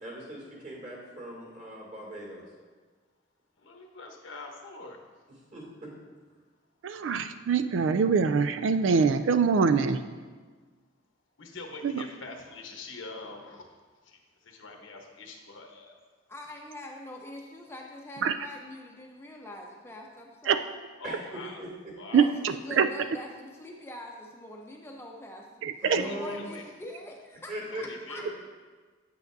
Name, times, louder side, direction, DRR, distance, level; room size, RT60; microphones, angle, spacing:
voice 1, 0.0-2.4 5.5-5.9 21.0-21.2 21.6-21.7 25.8-26.4 27.5-27.8 28.1-28.3, equal, 40° right, -3 dB, 2.4 m, -39 dB
voice 2, 3.6-5.0 11.4-16.0 21.0-21.6 22.0-22.3 25.9-26.6 27.7-28.3, left 3 dB, 90° left, 2 dB, 1.1 m, -44 dB
voice 3, 6.8-10.0 11.8-12.0 18.2-18.3 20.5-20.6 22.1-22.9 25.6-26.0, right 5 dB, 80° right, 10 dB, 0.4 m, -24 dB
voice 4, 16.3-20.7 22.1-25.5 26.0-27.5 27.8-28.3, left 1 dB, 15° left, 0 dB, 0.6 m, -44 dB
8.9 x 8.3 x 2.6 m, 1.4 s
head